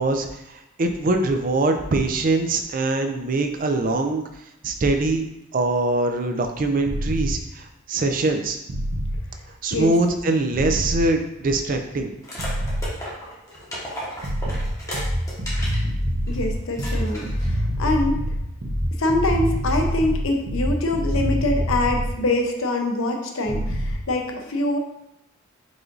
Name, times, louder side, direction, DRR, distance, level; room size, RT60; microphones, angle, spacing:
voice 1, 0.0-4.2 4.6-5.3 5.5-8.6 9.6-12.1, right 2 dB, 40° right, 5 dB, 0.4 m, -23 dB
sound 1, 6.8-7.3 8.7-9.2 10.5-11.0 12.4-12.8 14.2-22.1 23.5-23.9, equal, 80° right, 0.9 m, -25 dB
sound 2, 12.2-15.8 16.3-16.4 16.7-17.5, equal, 15° left, 1.0 m, -34 dB
voice 2, 16.3-18.2 19.0-24.8, left 2 dB, 85° left, 3 dB, 0.7 m, -24 dB
4.8 x 2.6 x 3.8 m, 0.85 s
head